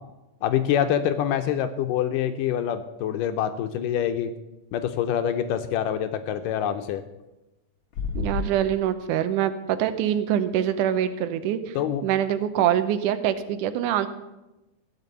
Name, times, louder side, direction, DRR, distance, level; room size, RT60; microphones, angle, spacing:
voice 1, 0.4-4.3 4.7-7.0 11.8-12.0, left 10 dB, 80° left, 8 dB, 2.1 m, -25 dB
sound 1, 7.9-8.5, left 4 dB, 60° left, 1.3 m, -28 dB
voice 2, 8.1-11.8 12.0-14.1, right 10 dB, 75° right, 11 dB, 2.1 m, -24 dB
16.0 x 6.0 x 8.2 m, 0.99 s
omnidirectional pair, 4.1 m